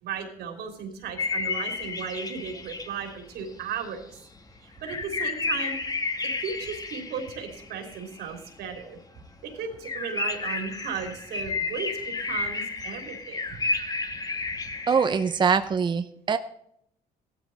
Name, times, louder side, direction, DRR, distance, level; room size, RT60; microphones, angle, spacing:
voice 1, 0.0-4.2 4.6-5.8 6.4-9.0 9.4-13.6, right 6 dB, 75° right, 4 dB, 3.3 m, -35 dB
sound 1, 1.2-4.0 4.3-4.4 4.8-8.8 9.2-9.3 9.5-9.6 9.8-15.5, left 3 dB, 20° left, 1.2 m, -32 dB
voice 2, 14.9-16.4, right 6 dB, 25° right, 9 dB, 0.6 m, -23 dB
15.5 x 12.5 x 4.1 m, 0.73 s
cardioid pair, 110°, 17 cm